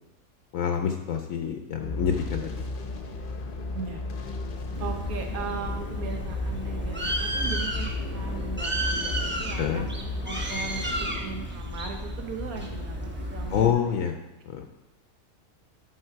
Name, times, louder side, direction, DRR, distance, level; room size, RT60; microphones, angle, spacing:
voice 1, 0.5-2.7 9.6-9.9 13.5-14.1 14.4-14.6, left 8 dB, 70° left, 4 dB, 1.0 m, -27 dB
sound 1, 1.8-11.2, left 2 dB, 45° left, 0.8 m, -35 dB
Bird, 4.7-13.7, right 1 dB, 10° right, 0.7 m, -32 dB
voice 2, 4.8-9.8 10.2-13.9, right 5 dB, 80° right, 3 dB, 1.5 m, -38 dB
11.0 x 3.9 x 4.6 m, 1.0 s
omnidirectional pair, 1.5 m